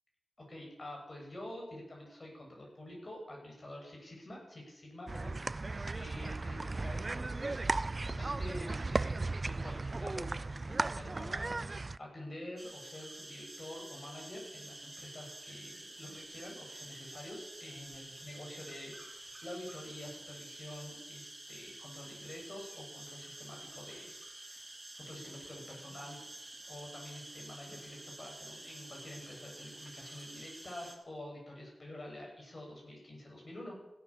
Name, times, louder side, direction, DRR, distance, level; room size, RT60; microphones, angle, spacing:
voice 1, 0.4-5.3 5.6-9.2 9.4-26.2 26.7-33.8, left 1 dB, 50° left, -1 dB, 7.2 m, -48 dB
sound 1, 5.1-12.0, right 3 dB, 50° right, 0.4 m, -36 dB
sound 2, 12.6-31.0, right 1 dB, 25° right, 3.3 m, -49 dB
16.5 x 9.8 x 7.2 m, 0.94 s
cardioid pair, 50°, 0 cm